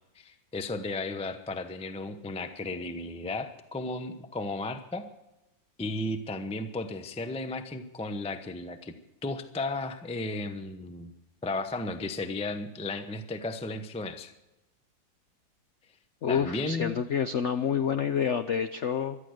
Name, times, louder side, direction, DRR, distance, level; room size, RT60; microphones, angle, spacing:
voice 1, 0.1-5.0 5.8-8.9 9.2-11.1 11.4-14.3 16.3-17.0, left 2 dB, 10° left, 9 dB, 0.4 m, -34 dB
voice 2, 16.2-19.2, left 7 dB, 90° left, 10 dB, 0.6 m, -28 dB
17.5 x 12.5 x 6.5 m, 0.96 s
omnidirectional pair, 2.1 m